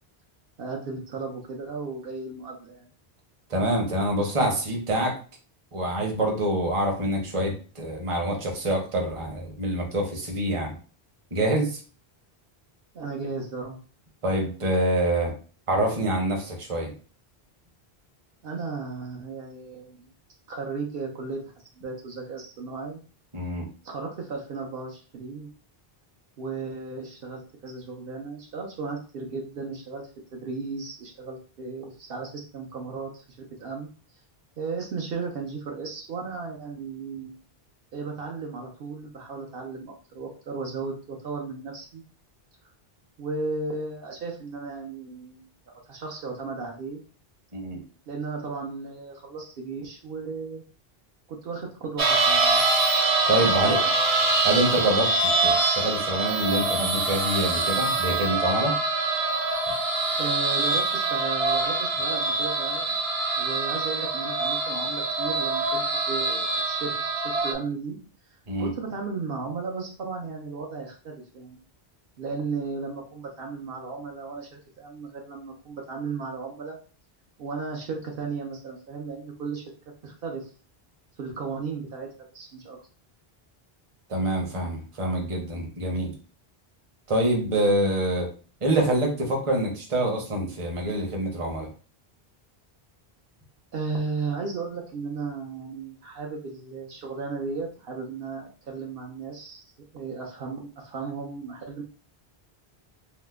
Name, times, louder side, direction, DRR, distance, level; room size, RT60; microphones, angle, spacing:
voice 1, 0.6-2.9 12.9-13.8 18.4-20.1 20.5-21.4 21.8-23.0 23.8-25.5 26.4-33.2 33.6-33.9 34.6-37.3 37.9-42.0 43.2-47.0 48.1-50.6 51.3-52.6 53.4-54.0 60.2-62.9 63.4-68.0 68.3-71.6 72.2-76.8 77.4-79.6 80.0-80.5 81.2-82.1 82.3-82.8 93.7-99.6 99.9-101.8, right 4 dB, 70° right, 0 dB, 0.8 m, -35 dB
voice 2, 3.5-5.2 5.7-10.7 11.3-11.8 14.2-15.3 15.7-16.9 23.3-23.7 47.5-47.8 53.3-53.8 54.4-58.7 68.5-68.7 84.1-86.1 87.1-88.3 88.6-91.7, right 1 dB, 35° right, 1 dB, 0.8 m, -26 dB
sound 1, 52.0-67.5, right 3 dB, 55° right, 0.4 m, -24 dB
2.9 x 2.0 x 3.3 m, 0.38 s
omnidirectional pair, 1.0 m